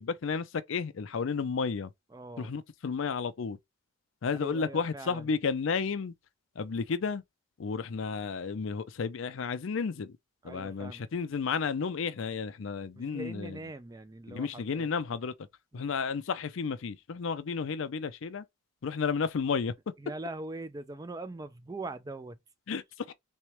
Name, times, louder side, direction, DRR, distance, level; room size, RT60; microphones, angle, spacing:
voice 1, 0.0-1.9 2.4-3.6 4.2-6.1 6.6-7.2 7.6-10.2 10.4-13.6 14.3-15.3 15.7-18.4 18.8-19.7 22.7-22.8 23.1-23.2, left 5 dB, 65° left, 0.4 m, -32 dB
voice 2, 2.1-2.5 4.4-5.3 10.4-11.0 12.9-14.9 15.7-15.9 20.0-22.4, right 2 dB, 15° right, 0.3 m, -42 dB
3.5 x 3.2 x 3.0 m
head